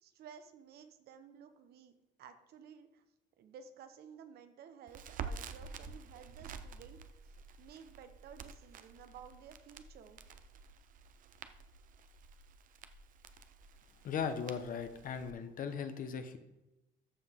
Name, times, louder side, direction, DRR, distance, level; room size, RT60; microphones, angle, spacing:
voice 1, 0.0-3.0 3.4-10.2, right 7 dB, 70° right, 8 dB, 1.0 m, -55 dB
Crackle, 4.9-15.3, right 5 dB, 55° right, 0.7 m, -49 dB
voice 2, 14.0-16.4, left 6 dB, 55° left, 9 dB, 1.0 m, -38 dB
13.5 x 4.8 x 3.7 m, 0.99 s
cardioid pair, 110°, 17 cm